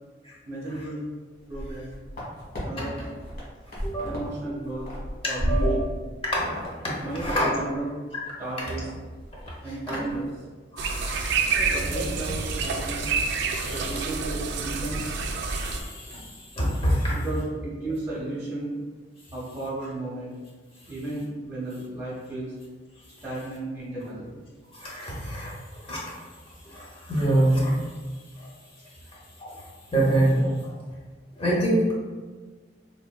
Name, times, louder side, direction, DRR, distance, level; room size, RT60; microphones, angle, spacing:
voice 1, 0.4-1.1 1.5-1.9 2.6-3.0 4.0-4.9 5.2-5.9 7.0-7.9 8.4-8.8 9.6-10.3 11.6-13.0 13.6-15.0 16.8-18.7 19.3-20.3 20.9-22.5 23.2-24.4 29.0-29.1, right 2 dB, 20° right, -9 dB, 0.6 m, -34 dB
sound 1, 1.4-2.6 3.0-4.3 4.6-6.1 6.5-6.7 7.0-7.5 7.7-7.8 8.3-8.9 9.2-9.5 9.9-10.2, equal, 55° left, 1.1 m, -32 dB
voice 2, 3.8-4.1 5.5-5.7 6.3-6.5 6.8-7.5 10.7-11.6 13.5-14.0 15.5-17.1 24.7-25.5 25.8-26.2 26.7-27.7 28.4-28.5 29.4-29.6 29.9-30.7 31.4-31.8, right 1 dB, 30° left, -4 dB, 0.8 m, -26 dB
sound 2, 10.8-15.8, right 4 dB, 65° right, 0.3 m, -28 dB
3.5 x 2.4 x 2.2 m, 1.4 s
head